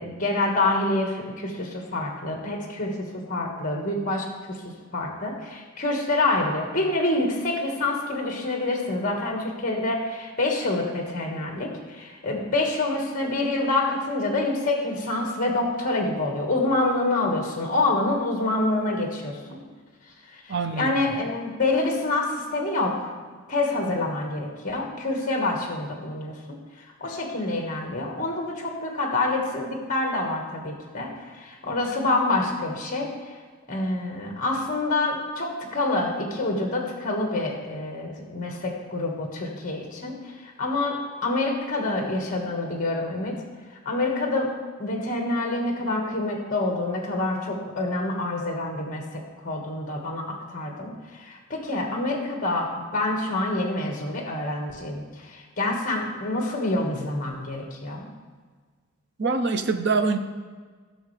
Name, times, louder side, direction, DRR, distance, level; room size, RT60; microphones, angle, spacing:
voice 1, 0.0-4.6 4.9-19.6 20.3-23.1 23.5-26.3 27.0-33.1 33.7-40.2 40.6-43.3 43.8-44.5 44.8-58.1, left 2 dB, 35° left, 1 dB, 1.5 m, -27 dB
voice 2, 20.5-20.9 59.2-60.2, right 4 dB, 50° right, 7 dB, 0.7 m, -24 dB
15.5 x 6.4 x 3.3 m, 1.5 s
head